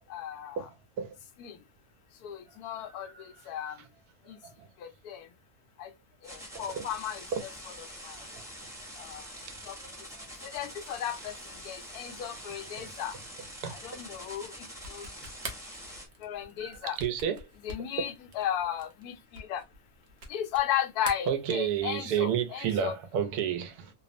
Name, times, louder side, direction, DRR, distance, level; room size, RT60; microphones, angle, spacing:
voice 1, 0.1-0.7 1.4-1.5 2.2-3.1 3.5-3.8 4.3-4.4 5.0-5.2 5.8-5.9 6.3-7.5 8.0-8.2 9.0-9.2 9.7-9.8 10.4-11.3 11.6-13.1 13.7-14.5 14.9-15.1 16.2-17.0 17.6-19.6 20.3-22.9, left 10 dB, 80° left, 1.1 m, -35 dB
voice 2, 2.8-3.3 4.4-4.7 6.5-6.9 7.3-7.4 10.2-10.3 12.3-12.4 12.8-12.9 13.6-13.7 16.6-17.4 21.3-23.9, right 8 dB, 85° right, 1.1 m, -31 dB
sound 1, 6.2-16.1, equal, 5° right, 0.6 m, -45 dB
sound 2, 14.7-20.7 21.0-22.0, right 2 dB, 55° right, 0.8 m, -44 dB
3.0 x 2.0 x 2.4 m
omnidirectional pair, 1.6 m